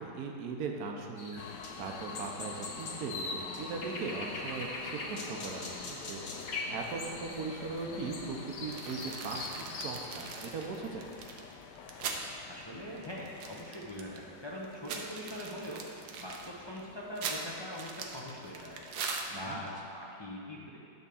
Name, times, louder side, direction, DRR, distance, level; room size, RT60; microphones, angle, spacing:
voice 1, 0.0-1.4 1.8-11.1 19.5-19.6, right 4 dB, 60° right, 1 dB, 1.2 m, -39 dB
sound 1, 1.2-10.0, left 3 dB, 50° left, 1.2 m, -42 dB
sound 2, 1.4-19.5, left 6 dB, 70° left, 1.1 m, -48 dB
sound 3, 8.7-12.3 12.6-12.7 13.0-14.2 14.6-19.7, right 5 dB, 75° right, 1.5 m, -41 dB
voice 2, 12.5-18.8 19.3-20.8, equal, 25° left, -5 dB, 0.5 m, -42 dB
11.0 x 3.6 x 7.0 m, 2.6 s
omnidirectional pair, 2.1 m